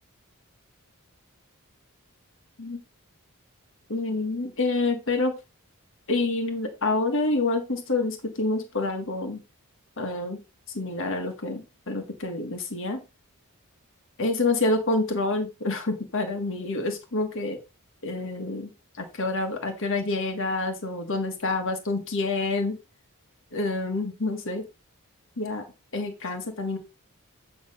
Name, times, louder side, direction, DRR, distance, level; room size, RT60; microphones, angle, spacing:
voice 1, 3.9-5.3 6.1-9.4 10.0-10.4 10.7-13.0 14.2-17.6 18.0-18.7 19.0-22.8 23.5-24.7 25.4-25.7 25.9-26.8, left 2 dB, 60° left, 5 dB, 1.6 m, -27 dB
8.7 x 3.4 x 5.5 m, 0.26 s
head